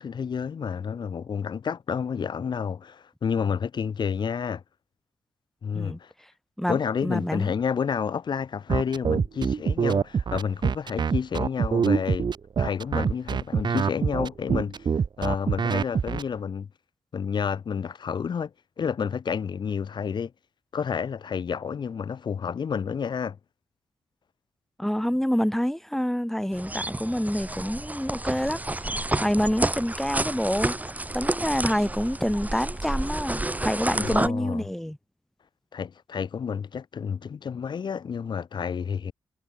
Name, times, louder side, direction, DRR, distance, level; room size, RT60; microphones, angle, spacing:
voice 1, 0.0-4.6 5.6-6.1 6.7-14.9 15.2-16.7 17.1-18.5 18.8-20.3 20.7-23.4 33.9-34.7 35.7-39.1, left 6 dB, 60° left, 1.1 m, -30 dB
voice 2, 6.6-7.5 24.8-30.7 31.1-35.0, equal, 5° left, 4.2 m, -27 dB
sound 1, 8.7-16.2, right 6 dB, 60° right, 1.5 m, -24 dB
sound 2, 26.5-34.3, right 2 dB, 20° right, 2.7 m, -30 dB
supercardioid pair, 50°, 9 cm